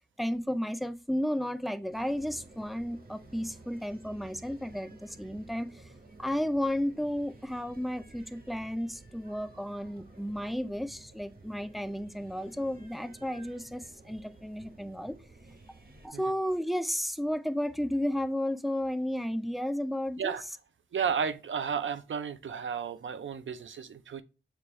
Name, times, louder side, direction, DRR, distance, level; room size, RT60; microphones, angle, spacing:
voice 1, 0.2-5.9 6.2-15.2 16.0-20.4, equal, ahead, 0.3 m, -33 dB
sound 1, 1.9-16.1, right 3 dB, 50° right, 0.7 m, -53 dB
voice 2, 20.9-24.2, right 7 dB, 75° right, 0.4 m, -33 dB
6.8 x 2.3 x 3.0 m
wide cardioid pair, 75°, 20 cm